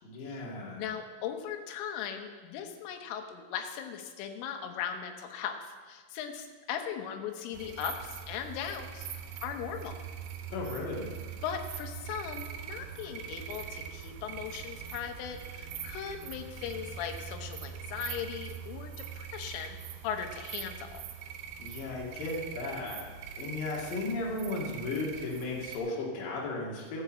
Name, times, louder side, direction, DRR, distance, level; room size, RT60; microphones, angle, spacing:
voice 1, 0.0-0.8 10.5-11.1 21.6-23.0 23.4-27.0, left 2 dB, 50° left, -3 dB, 3.3 m, -35 dB
voice 2, 0.8-9.1 9.4-10.0 11.4-19.8 20.0-21.0, left 8 dB, 80° left, 5 dB, 3.5 m, -38 dB
sound 1, 7.5-25.8, right 8 dB, 75° right, 2.4 m, -42 dB
13.0 x 6.9 x 7.4 m, 1.5 s
omnidirectional pair, 5.8 m